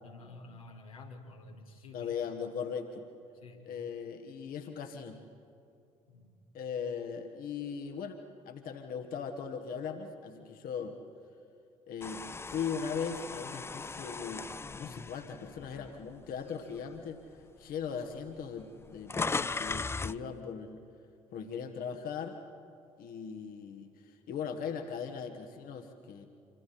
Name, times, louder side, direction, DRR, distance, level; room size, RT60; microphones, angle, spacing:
voice 1, 0.0-2.1 3.4-3.7 6.1-6.3, left 3 dB, 85° left, -1 dB, 2.1 m, -50 dB
voice 2, 1.9-3.0 3.6-5.2 6.5-8.2 8.4-11.0 11.9-17.2 17.6-20.8 21.3-22.4 23.0-26.3, left 6 dB, 55° left, 5 dB, 1.6 m, -39 dB
sound 1, 12.0-16.3 16.8-17.0 17.9-18.0 18.2-20.2, left 4 dB, 15° left, 0.4 m, -38 dB
27.0 x 25.5 x 4.3 m, 2.5 s
figure-of-eight pair, 50°, 18 cm